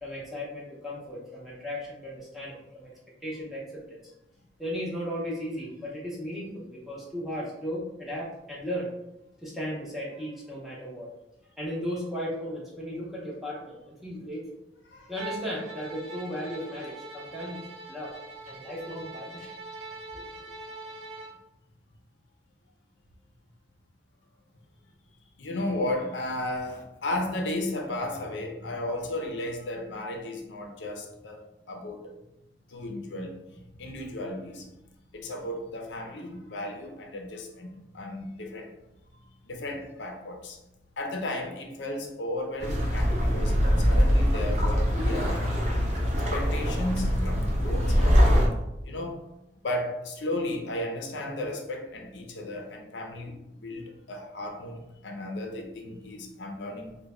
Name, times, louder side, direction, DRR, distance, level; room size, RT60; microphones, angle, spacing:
voice 1, 0.0-2.9 3.2-3.8 4.6-8.9 9.4-11.1 11.6-14.5 15.1-17.6 17.9-18.1 18.5-19.5 20.1-20.3, equal, ahead, -5 dB, 0.7 m, -35 dB
Bowed string instrument, 15.1-21.4, right 2 dB, 80° right, 0.8 m, -42 dB
voice 2, 25.4-31.4 31.7-32.1 32.7-33.3 33.7-34.7 35.1-38.7 39.4-40.6 41.0-45.6 46.3-48.2 48.8-49.2 49.6-56.9, left 1 dB, 75° left, 2 dB, 0.5 m, -34 dB
sound 1, 42.6-48.5, equal, 35° right, 0.7 m, -23 dB
3.1 x 2.2 x 3.6 m, 0.89 s
head